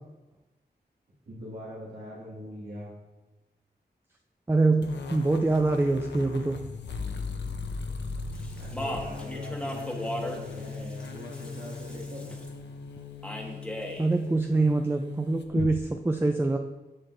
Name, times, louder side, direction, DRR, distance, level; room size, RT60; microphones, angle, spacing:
voice 1, 1.3-2.9 8.6-12.4, equal, 75° right, -6 dB, 1.7 m, -42 dB
voice 2, 4.5-6.6 14.0-16.6, right 3 dB, 15° right, 4 dB, 0.4 m, -25 dB
sound 1, 4.8-15.7, left 4 dB, 85° left, 0.7 m, -38 dB
Speech, 8.3-12.5 13.2-14.1, equal, 5° left, 1.2 m, -37 dB
10.0 x 6.2 x 2.6 m, 1.1 s
wide cardioid pair, 60°, 18 cm